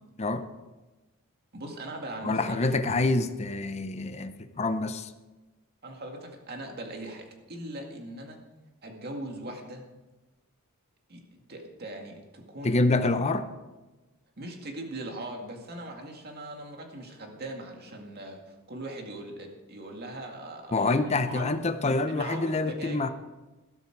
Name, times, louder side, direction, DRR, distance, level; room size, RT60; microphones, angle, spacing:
voice 1, 1.5-2.8 5.8-8.4 8.8-9.8 11.1-12.8 13.2-13.4 14.4-21.5 21.8-23.0, right 1 dB, 45° right, 2 dB, 2.0 m, -40 dB
voice 2, 2.2-5.1 12.6-13.4 20.7-23.1, left 3 dB, 30° left, 10 dB, 0.7 m, -26 dB
12.5 x 12.5 x 4.6 m, 1.1 s
head